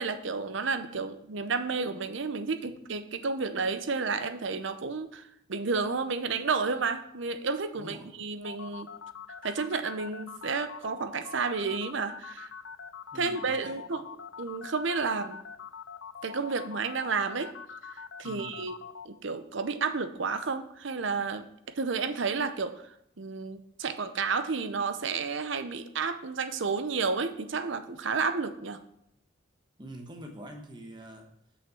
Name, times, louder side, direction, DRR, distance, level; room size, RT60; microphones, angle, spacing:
voice 1, 0.0-8.9 9.4-12.5 13.1-14.0 14.4-15.4 16.2-17.5 18.2-18.7 19.0-21.5 21.8-22.9 23.2-28.8, right 4 dB, 65° right, 10 dB, 0.7 m, -31 dB
voice 2, 7.8-8.1 13.1-13.8 18.2-18.7 29.8-31.3, right 1 dB, 20° right, 2 dB, 1.1 m, -45 dB
sound 1, 8.4-19.1, left 6 dB, 65° left, 0.6 m, -43 dB
6.5 x 5.5 x 7.0 m, 0.74 s
head